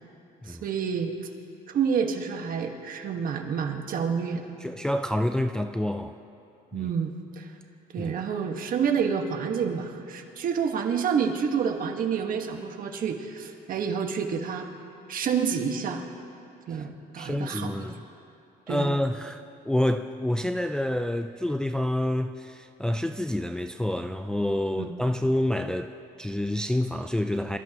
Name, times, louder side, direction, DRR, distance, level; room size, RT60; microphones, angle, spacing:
voice 1, 0.5-1.2 1.7-4.5 6.7-7.5 7.9-14.7 15.1-16.0 16.7-17.9 18.7-18.9 24.8-24.9, right 6 dB, 55° right, 1.5 m, -28 dB
voice 2, 4.6-6.2 6.7-6.9 8.0-8.1 17.2-18.0 18.7-27.6, left 1 dB, 5° left, 0.4 m, -28 dB
26.0 x 13.0 x 3.0 m
cardioid pair, 110°, 17 cm